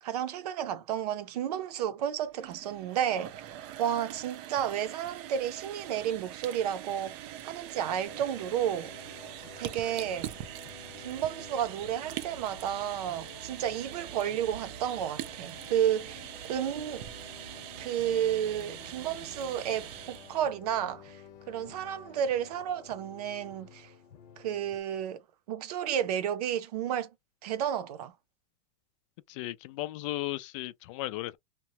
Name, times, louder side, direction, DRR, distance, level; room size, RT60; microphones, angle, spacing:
voice 1, 0.0-3.4 3.8-8.9 9.6-10.4 11.0-17.1 17.8-21.2 21.5-23.9 24.4-25.2 25.5-27.1 27.4-28.1, right 9 dB, 75° right, 0.6 m, -32 dB
sound 1, 2.2-20.5, right 12 dB, 40° right, 0.4 m, -43 dB
sound 2, 8.0-24.8, left 8 dB, 80° left, 0.9 m, -52 dB
voice 2, 29.3-31.4, left 16 dB, 50° left, 0.4 m, -35 dB
2.9 x 2.2 x 2.8 m
supercardioid pair, 150°, 20 cm